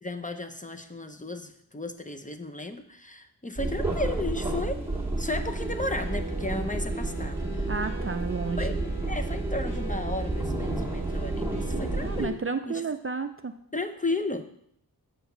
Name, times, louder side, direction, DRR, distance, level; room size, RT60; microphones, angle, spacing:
voice 1, 0.0-4.8 5.2-7.7 8.6-12.4 12.7-12.8 13.7-14.5, left 2 dB, 20° left, 6 dB, 0.7 m, -34 dB
sound 1, 3.6-12.3, right 2 dB, 5° right, 1.8 m, -30 dB
voice 2, 7.7-8.7 12.0-13.5, right 4 dB, 35° right, 8 dB, 0.5 m, -31 dB
7.6 x 4.6 x 6.6 m, 0.68 s
wide cardioid pair, 80°, 38 cm